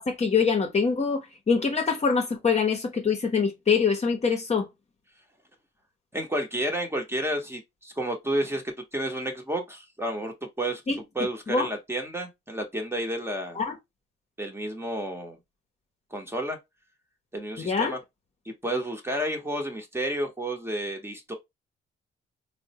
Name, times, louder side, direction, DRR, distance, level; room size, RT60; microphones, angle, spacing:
voice 1, 0.0-4.7 10.9-11.7 13.6-13.7 17.6-17.9, left 5 dB, 35° left, 0.8 m, -25 dB
voice 2, 6.1-10.8 11.1-13.6 14.4-15.4 16.1-16.6 17.3-18.0 18.4-21.3, right 1 dB, 10° right, 0.9 m, -31 dB
3.6 x 2.1 x 2.8 m
cardioid pair, 90°, 20 cm